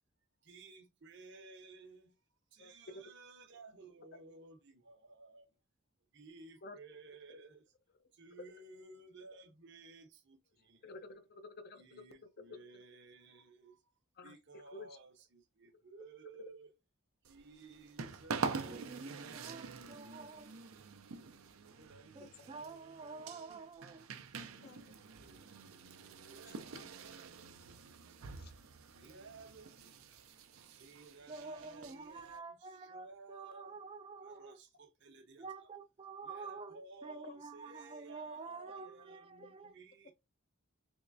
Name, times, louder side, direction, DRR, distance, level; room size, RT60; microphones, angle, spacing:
voice 1, 0.4-2.2 2.5-5.5 6.1-7.7 8.1-10.9 11.7-13.9 14.2-16.7 17.2-20.9 21.7-23.7 25.2-25.5 26.3-27.6 28.9-30.2 30.6-33.8 34.2-35.7 36.2-40.1, right 3 dB, 55° right, 0.8 m, -56 dB
voice 2, 2.6-3.0 6.6-6.8 10.8-12.1 12.6-12.7 14.2-14.3 14.7-14.9 22.2-22.5 24.1-24.2 24.6-24.9 26.8-26.9 28.4-28.5, left 2 dB, 50° left, 0.5 m, -51 dB
sound 1, 17.2-32.4, right 4 dB, 85° right, 0.6 m, -46 dB
voice 3, 18.7-20.5 22.2-24.1 31.3-34.6 35.4-39.7, right 4 dB, 25° right, 0.3 m, -48 dB
3.6 x 3.1 x 2.5 m
head